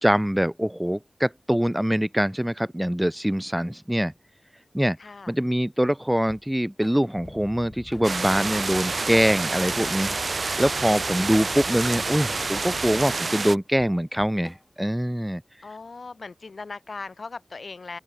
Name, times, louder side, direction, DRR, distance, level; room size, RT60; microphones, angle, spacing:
voice 1, 0.0-4.1 4.7-5.0 5.3-10.1 10.6-15.4, equal, 5° right, 0.5 m, -24 dB
voice 2, 5.0-5.3 11.1-11.5 15.6-18.0, left 4 dB, 75° left, 1.8 m, -39 dB
Drum kit / Drum, 6.3-14.9, left 1 dB, 15° left, 4.2 m, -48 dB
sound 1, 7.1-13.1, left 2 dB, 45° left, 3.1 m, -44 dB
sound 2, 8.0-13.6, right 3 dB, 70° right, 1.0 m, -28 dB
open air
wide cardioid pair, 50°, 0 cm